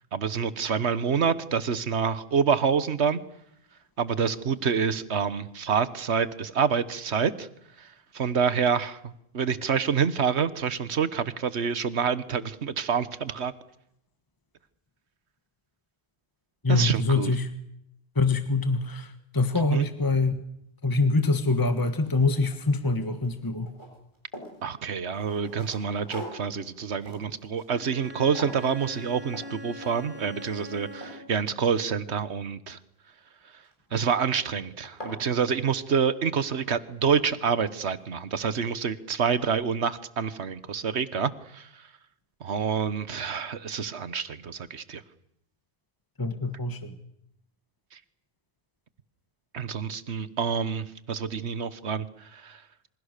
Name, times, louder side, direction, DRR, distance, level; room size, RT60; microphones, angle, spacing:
voice 1, 0.1-3.2 4.0-7.5 7.8-7.9 8.1-13.5 16.7-17.3 19.7-19.9 24.6-32.8 33.9-41.7 42.4-45.0 49.5-52.6, right 6 dB, 85° right, 15 dB, 1.5 m, -27 dB
voice 2, 16.6-17.5 18.1-20.3 20.8-23.7 46.2-46.9, left 3 dB, 20° left, 9 dB, 1.4 m, -25 dB
sound 1, 20.9-21.0 21.5-22.9 23.2-24.6 25.1-28.1 28.4-28.7 29.3-29.5 29.8-30.2 30.6-32.2 33.6-34.0 34.5-34.6 34.8-35.2, equal, 50° left, 7.4 m, -44 dB
Bowed string instrument, 27.7-31.5, left 1 dB, 10° right, 3.3 m, -42 dB
28.0 x 26.0 x 6.7 m, 0.78 s
omnidirectional pair, 1.1 m